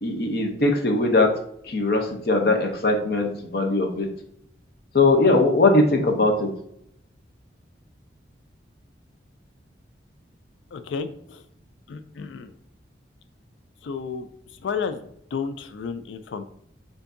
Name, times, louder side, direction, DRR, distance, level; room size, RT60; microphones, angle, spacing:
voice 1, 0.0-1.3 1.7-4.1 4.9-6.5, left 2 dB, 55° left, 3 dB, 0.7 m, -20 dB
voice 2, 10.7-11.4 11.9-12.5 13.8-14.3 14.6-16.4, left 5 dB, 80° left, 10 dB, 0.4 m, -32 dB
6.8 x 2.6 x 2.6 m, 0.70 s
head